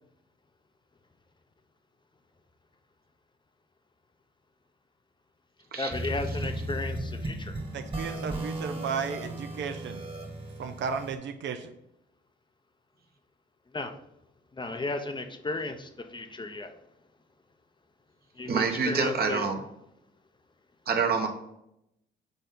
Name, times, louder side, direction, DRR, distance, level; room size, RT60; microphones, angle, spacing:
voice 1, 5.8-7.5 13.7-13.9 14.5-16.7 18.4-19.5, left 2 dB, 25° left, 7 dB, 0.7 m, -34 dB
sound 1, 5.9-11.2, right 1 dB, 25° right, 1.5 m, -35 dB
voice 2, 7.7-10.1 10.6-11.7, right 6 dB, 65° right, 7 dB, 0.6 m, -34 dB
voice 3, 18.5-19.6 20.9-21.3, right 5 dB, 50° right, 3 dB, 1.2 m, -26 dB
6.9 x 4.0 x 3.8 m, 0.80 s
cardioid pair, 90°, 20 cm